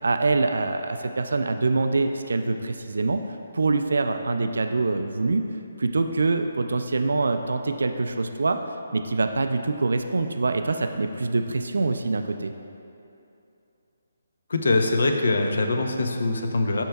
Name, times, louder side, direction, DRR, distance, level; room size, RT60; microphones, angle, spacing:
voice 1, 0.0-3.2 3.5-5.5 5.8-8.6 8.9-12.5, right 3 dB, 85° right, 7 dB, 0.3 m, -24 dB
voice 2, 14.5-16.8, left 2 dB, 75° left, 4 dB, 0.6 m, -23 dB
11.5 x 4.5 x 2.3 m, 2.7 s
hypercardioid pair, 165°, 0 cm